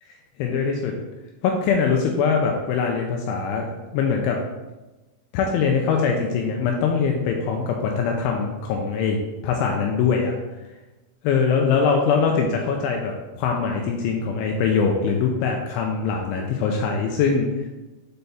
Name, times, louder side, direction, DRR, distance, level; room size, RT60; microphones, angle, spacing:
voice 1, 0.4-0.9 1.4-3.7 3.9-4.4 5.3-9.2 9.4-10.4 11.2-17.7, left 5 dB, 85° left, 1 dB, 2.7 m, -22 dB
7.7 x 4.4 x 3.4 m, 1.1 s
omnidirectional pair, 6.0 m